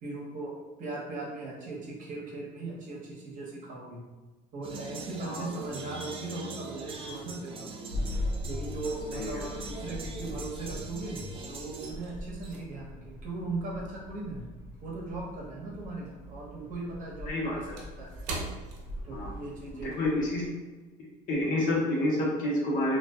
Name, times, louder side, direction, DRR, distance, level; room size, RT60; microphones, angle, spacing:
voice 1, 0.0-4.0 4.5-8.1 8.5-14.5 14.8-18.1 19.0-20.3, right 2 dB, 50° right, -3 dB, 0.8 m, -39 dB
sound 1, 4.6-11.9, right 3 dB, 30° right, 0.4 m, -41 dB
sound 2, 7.9-20.5, left 1 dB, 85° left, 0.9 m, -41 dB
voice 2, 9.1-9.4 17.3-17.8 19.1-19.3 19.8-20.4 21.3-23.0, left 1 dB, 50° left, -3 dB, 0.8 m, -29 dB
sound 3, 11.7-16.0 16.3-19.6 19.9-20.1 20.6-20.8, right 2 dB, 80° right, 0.6 m, -45 dB
2.5 x 2.3 x 2.3 m, 1.2 s
cardioid pair, 115°, 17 cm